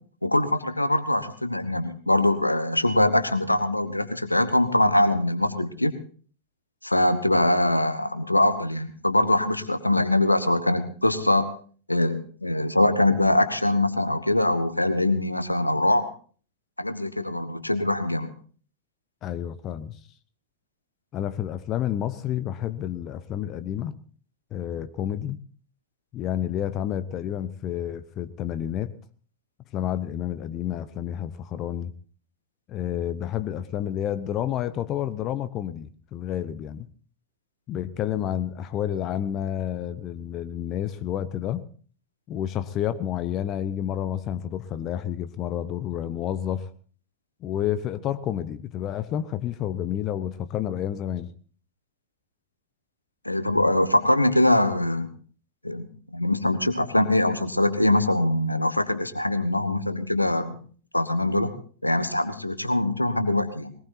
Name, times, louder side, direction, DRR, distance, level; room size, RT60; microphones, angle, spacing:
voice 1, 0.2-5.9 6.8-11.5 11.9-16.1 16.8-18.3 53.2-55.1 55.6-60.6 60.9-61.5 61.8-63.7, left 1 dB, 85° left, 1.3 m, -23 dB
voice 2, 19.2-20.0 21.1-23.9 24.5-25.4 26.1-28.9 29.7-31.9 32.7-36.9 37.7-41.6 42.3-46.7 47.4-51.3, left 10 dB, 35° left, 0.8 m, -30 dB
21.5 x 19.5 x 2.7 m
figure-of-eight pair, 90°, 0 cm